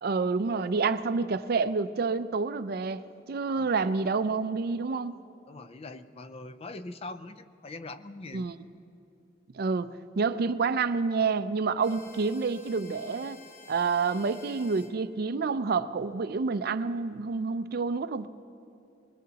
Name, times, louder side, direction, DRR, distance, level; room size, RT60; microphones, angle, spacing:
voice 1, 0.0-3.0 3.3-5.2 8.3-8.5 9.5-9.9 10.2-13.4 13.7-18.3, right 4 dB, 55° right, 13 dB, 0.4 m, -28 dB
voice 2, 5.5-8.5, left 2 dB, 35° left, 11 dB, 0.5 m, -42 dB
sound 1, 11.8-14.9, left 4 dB, 50° left, 1.0 m, -52 dB
22.0 x 20.0 x 2.9 m, 2.6 s
head